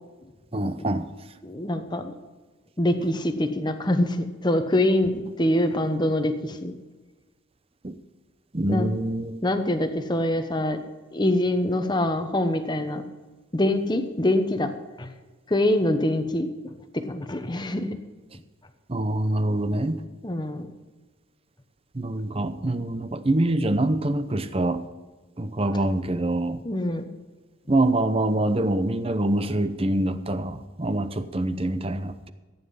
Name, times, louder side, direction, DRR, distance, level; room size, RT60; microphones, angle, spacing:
voice 1, 0.5-1.1 7.8-8.0 8.5-9.4 18.9-20.0 21.9-24.9 25.4-26.6 27.7-32.3, right 1 dB, 30° right, 0.7 m, -25 dB
voice 2, 1.4-2.1 2.8-6.7 8.7-8.9 9.4-10.8 11.1-13.0 13.5-15.1 15.5-18.0 20.2-20.7 26.6-27.1, left 1 dB, 20° left, 1.0 m, -25 dB
14.5 x 9.6 x 5.6 m
head